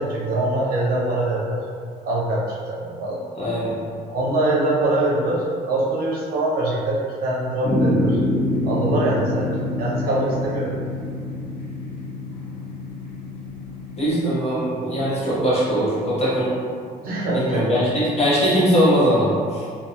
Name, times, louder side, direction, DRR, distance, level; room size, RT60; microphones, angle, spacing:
voice 1, 0.0-1.6 2.0-3.2 4.1-8.2 8.6-9.5 9.8-10.7 17.0-17.8, right 2 dB, 60° right, -5 dB, 0.7 m, -23 dB
voice 2, 3.3-3.7 14.0-16.5 17.3-19.6, equal, 40° left, -9 dB, 1.0 m, -20 dB
sound 1, 7.6-14.1, left 1 dB, 75° left, 1.1 m, -26 dB
2.3 x 2.3 x 2.8 m, 2.1 s
cardioid pair, 110°, 17 cm